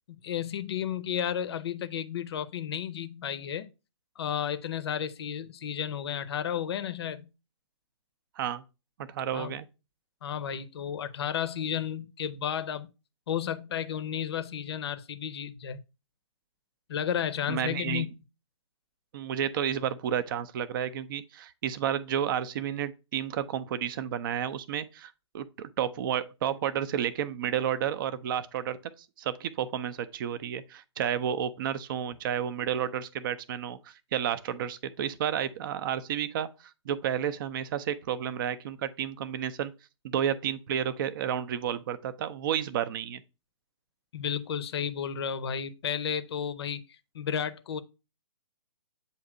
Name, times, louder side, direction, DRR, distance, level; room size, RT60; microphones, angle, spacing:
voice 1, 0.1-3.7 4.2-7.3 9.3-9.5 10.2-12.9 13.3-15.8 16.9-18.1 44.1-47.8, left 9 dB, 55° left, 0.6 m, -32 dB
voice 2, 9.1-9.7 17.5-18.0 19.1-28.8 29.2-39.7 40.0-43.2, right 9 dB, 45° right, 0.4 m, -31 dB
7.7 x 2.8 x 4.8 m
figure-of-eight pair, 130°, 16 cm